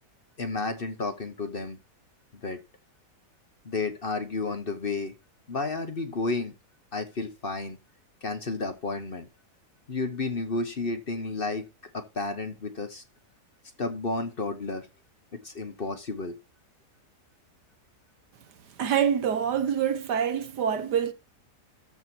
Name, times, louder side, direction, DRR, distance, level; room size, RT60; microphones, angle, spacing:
voice 1, 0.4-1.8 2.4-2.6 3.6-5.1 5.5-6.5 6.9-7.8 8.2-9.3 9.9-11.7 11.9-13.0 13.8-14.9 15.3-16.4, left 3 dB, 40° left, 1.1 m, -31 dB
voice 2, 18.8-21.1, right 8 dB, 85° right, 1.7 m, -26 dB
13.0 x 4.6 x 6.0 m
omnidirectional pair, 1.7 m